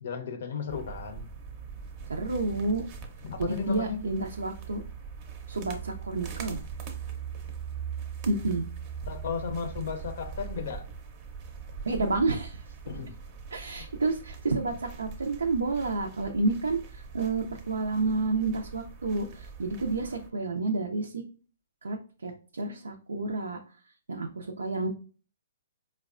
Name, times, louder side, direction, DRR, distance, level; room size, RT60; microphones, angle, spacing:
voice 1, 0.0-1.3 3.2-4.0 9.1-10.9 12.8-13.2, left 6 dB, 65° left, 0.6 m, -34 dB
sound 1, 0.7-20.3, right 6 dB, 35° right, 0.6 m, -41 dB
voice 2, 2.1-2.8 3.4-4.8 5.5-6.6 8.3-8.7 11.8-12.6 13.5-21.2 21.8-23.6 24.1-24.9, right 3 dB, 85° right, 0.4 m, -30 dB
4.5 x 2.1 x 2.4 m
hypercardioid pair, 135°, 0 cm